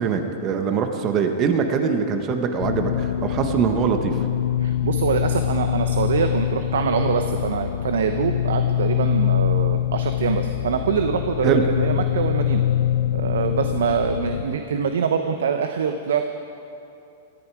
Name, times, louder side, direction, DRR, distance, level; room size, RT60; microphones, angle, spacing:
voice 1, 0.0-4.2 11.4-11.7, right 6 dB, 35° right, 6 dB, 1.4 m, -22 dB
sound 1, 2.6-14.4, left 11 dB, 70° left, 0.6 m, -24 dB
voice 2, 4.6-12.6 13.1-16.3, right 6 dB, 80° right, 7 dB, 0.8 m, -24 dB
18.0 x 13.5 x 4.8 m, 2.7 s
hypercardioid pair, 125°, 0 cm